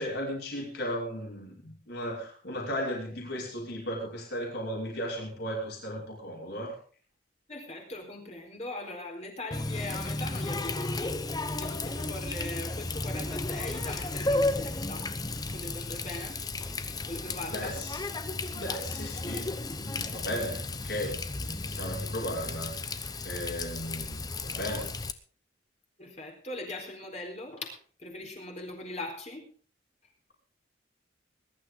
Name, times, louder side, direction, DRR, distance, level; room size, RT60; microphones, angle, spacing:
voice 1, 0.0-6.8 17.5-18.0 18.5-19.5 19.8-22.7 23.2-24.9, equal, 55° left, -3 dB, 5.9 m, -36 dB
voice 2, 7.5-15.1 15.5-16.4 17.1-17.9 26.0-29.5, left 2 dB, 35° left, 2 dB, 4.2 m, -40 dB
Water tap faucet, 9.5-25.1, left 2 dB, 20° left, 0.8 m, -34 dB
21.0 x 12.0 x 3.9 m, 0.41 s
head